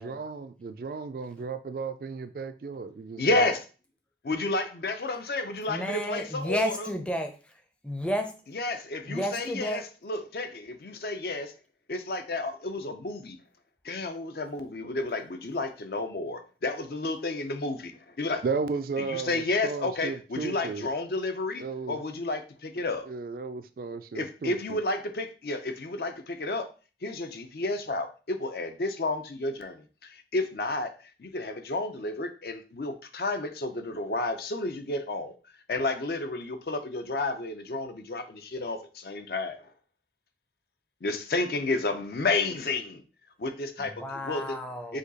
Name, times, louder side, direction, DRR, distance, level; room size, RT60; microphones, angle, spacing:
voice 1, 0.0-3.4 18.4-20.8 21.6-22.0 23.1-24.8, right 4 dB, 55° right, 10 dB, 0.3 m, -34 dB
voice 2, 3.2-3.6 4.2-6.9 8.5-11.5 11.9-13.4 13.8-18.4 19.0-23.0 24.1-26.7 27.0-30.9 31.2-35.3 35.7-39.7 41.0-43.0 43.4-44.6 44.9-45.0, left 2 dB, 60° left, 7 dB, 0.5 m, -31 dB
voice 3, 5.7-7.3 7.8-8.3 9.1-9.8 43.8-45.0, equal, 5° left, 5 dB, 0.5 m, -32 dB
5.1 x 2.3 x 4.0 m, 0.36 s
head